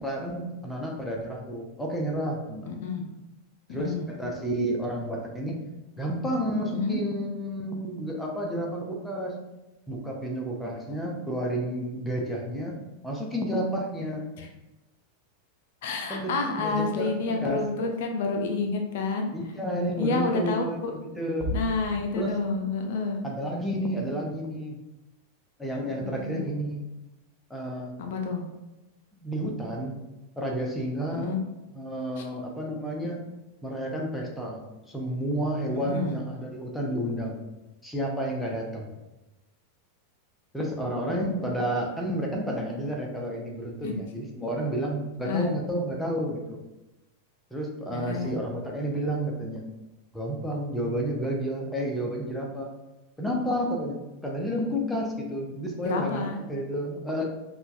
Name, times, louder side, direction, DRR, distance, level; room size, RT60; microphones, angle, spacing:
voice 1, 0.0-2.7 3.7-5.6 6.0-9.3 9.9-12.8 13.0-14.3 16.1-17.6 19.3-21.5 22.1-22.4 23.2-24.8 25.6-26.9 27.5-27.9 29.1-29.9 30.4-31.3 31.7-33.2 33.6-37.4 37.8-38.9 40.5-46.6 47.5-49.6 50.1-52.7 53.2-54.0 54.2-57.2, equal, 5° left, -1 dB, 0.7 m, -31 dB
voice 2, 2.7-3.0 3.7-4.1 6.7-7.0 14.4-14.5 15.8-19.3 20.0-20.9 21.5-23.2 26.0-26.5 28.0-28.4 31.1-31.4 32.2-32.3 35.7-36.2 43.8-43.9 45.2-45.5 47.9-48.4 55.8-56.4, left 4 dB, 55° left, 3 dB, 0.5 m, -29 dB
Bass drum, 21.4-22.8, equal, 35° right, 1.2 m, -34 dB
5.4 x 2.3 x 2.6 m, 1.0 s
figure-of-eight pair, 90°, 0 cm